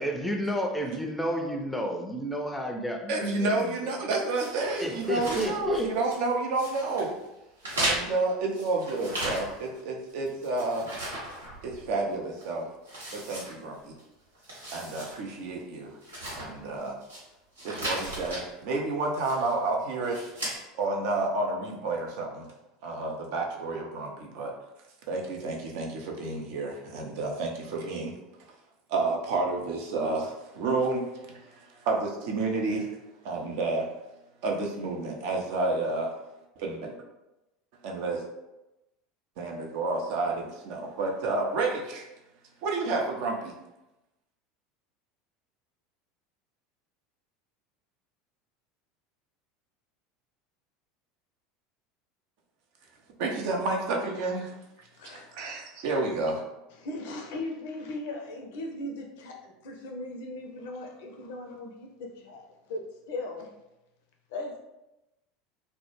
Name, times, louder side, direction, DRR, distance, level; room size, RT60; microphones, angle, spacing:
voice 1, 0.0-3.9 4.8-5.9, equal, 5° left, 1 dB, 0.4 m, -31 dB
voice 2, 3.1-7.2 7.8-10.9 11.6-12.7 13.1-13.9 14.7-15.9 16.4-17.0 17.6-20.2 20.8-22.5 22.8-24.5 25.1-28.1 28.9-32.9 33.2-33.9 34.4-36.1 36.6-36.9 37.8-38.2 39.4-42.1 42.6-43.5 53.2-54.5 55.0-56.4, right 3 dB, 60° right, 0 dB, 0.4 m, -30 dB
sound 1, 4.3-6.3 6.5-7.1 7.6-9.8 10.1-12.0 12.4-12.5 12.9-14.0 14.3-15.2 15.5-15.6 16.0-17.2 17.6-18.4 19.1-19.6 20.0-20.6, right 1 dB, 85° right, 0.8 m, -36 dB
voice 3, 55.0-55.3 56.7-63.5 64.3-64.6, left 2 dB, 65° left, 2 dB, 0.4 m, -38 dB
2.0 x 2.0 x 2.9 m, 0.96 s
figure-of-eight pair, 75°, 0 cm